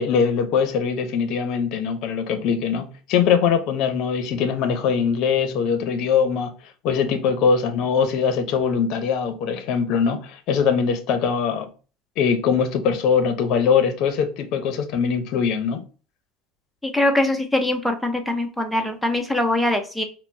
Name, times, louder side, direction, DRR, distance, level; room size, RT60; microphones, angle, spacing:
voice 1, 0.0-6.5 6.8-11.7 12.2-15.8, left 6 dB, 60° left, 0.7 m, -22 dB
voice 2, 16.8-20.0, left 1 dB, ahead, 0.6 m, -22 dB
4.2 x 2.1 x 2.7 m
supercardioid pair, 120°, 0 cm